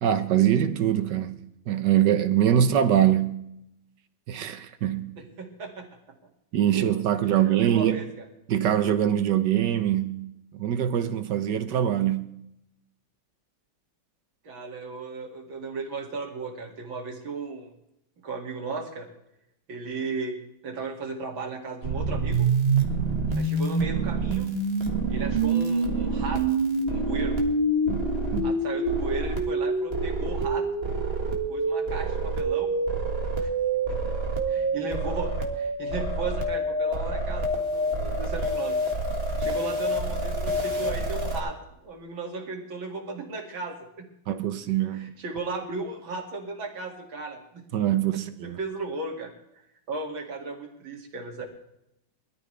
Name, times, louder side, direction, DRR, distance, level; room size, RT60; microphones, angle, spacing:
voice 1, 0.0-1.4 1.7-3.3 4.3-5.1 6.5-8.0 8.5-12.3 27.9-28.5 44.3-45.1 47.7-48.6, right 10 dB, 65° right, 1.4 m, -23 dB
voice 2, 5.4-5.9 6.7-6.9 7.3-8.2 14.4-17.7 18.2-19.1 19.7-20.4 20.6-22.5 23.3-24.5 25.1-26.4 26.9-27.4 28.4-30.7 31.5-32.8 33.4-33.5 33.9-34.0 34.5-38.8 39.4-41.6 41.8-44.1 44.9-47.6 48.1-49.3 49.9-51.5, right 3 dB, 80° right, 3.2 m, -35 dB
sound 1, 21.8-41.4, right 2 dB, 30° right, 1.9 m, -26 dB
21.5 x 13.0 x 3.3 m
omnidirectional pair, 2.1 m